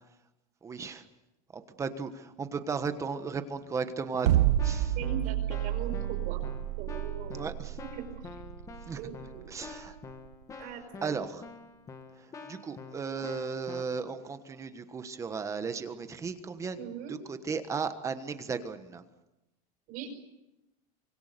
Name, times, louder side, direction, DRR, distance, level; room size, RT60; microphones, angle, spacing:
voice 1, 0.6-1.0 1.8-4.9 7.3-7.8 8.9-9.0 9.5-9.9 11.0-11.4 12.5-16.8 17.1-19.0, right 5 dB, 15° right, 9 dB, 1.3 m, -35 dB
Keyboard (musical), 3.6-3.8 4.1-13.8, left 4 dB, 15° left, 1.6 m, -47 dB
sound 1, 4.3-10.4, right 13 dB, 90° right, 1.0 m, -29 dB
voice 2, 5.0-6.4 6.8-7.4 7.9-8.1 9.0-9.5 10.6-11.1 16.8-17.2 19.9-20.1, right 8 dB, 40° right, 4 dB, 5.5 m, -40 dB
25.5 x 25.0 x 6.8 m, 0.95 s
supercardioid pair, 165°, 20 cm